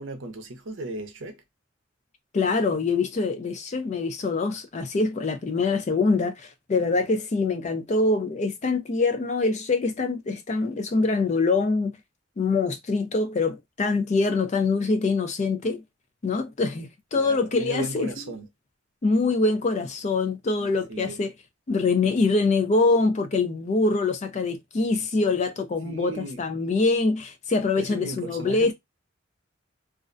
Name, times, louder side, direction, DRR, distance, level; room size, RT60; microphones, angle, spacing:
voice 1, 0.0-1.4 17.1-18.5 20.6-21.2 25.8-26.4 27.8-28.7, right 2 dB, 65° right, 0.6 m, -36 dB
voice 2, 2.3-11.9 12.4-15.8 16.2-18.1 19.0-21.3 21.7-28.7, left 3 dB, 35° left, 0.4 m, -24 dB
2.4 x 2.1 x 2.4 m
head